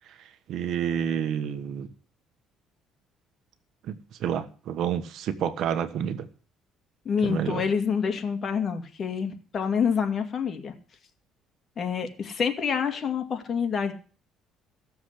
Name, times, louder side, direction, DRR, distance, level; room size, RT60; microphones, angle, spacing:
voice 1, 0.5-1.9 3.8-6.3 7.2-7.6, right 8 dB, 65° right, 11 dB, 1.3 m, -29 dB
voice 2, 7.0-10.7 11.8-13.9, left 6 dB, 40° left, 6 dB, 2.3 m, -27 dB
16.0 x 7.1 x 8.2 m, 0.39 s
cardioid pair, 115°, 0 cm